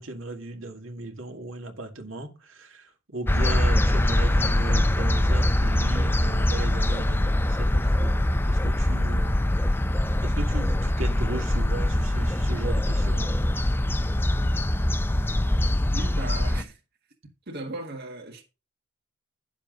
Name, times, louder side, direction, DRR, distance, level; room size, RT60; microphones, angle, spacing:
voice 1, 0.0-8.1 8.5-9.4 10.2-13.4, right 2 dB, 75° right, 2.1 m, -37 dB
sound 1, 3.3-16.6, left 1 dB, 10° left, 0.5 m, -23 dB
voice 2, 15.9-16.8 17.5-18.4, right 2 dB, 55° right, 1.8 m, -36 dB
11.0 x 7.2 x 3.9 m
head